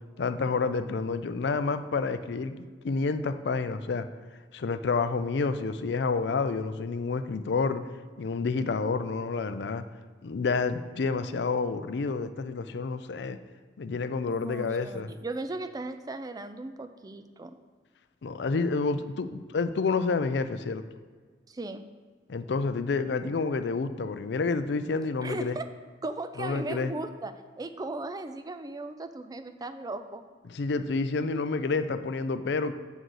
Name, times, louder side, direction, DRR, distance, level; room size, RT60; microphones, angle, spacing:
voice 1, 0.2-4.1 4.5-7.8 8.2-9.8 10.2-13.4 13.8-15.1 18.2-20.8 22.3-25.6 26.4-26.9 30.5-32.7, left 4 dB, 70° left, 10 dB, 0.4 m, -29 dB
voice 2, 14.3-17.5 21.5-21.8 25.2-25.7 26.0-30.3, right 2 dB, 20° right, 10 dB, 0.4 m, -37 dB
8.0 x 3.9 x 6.3 m, 1.5 s
head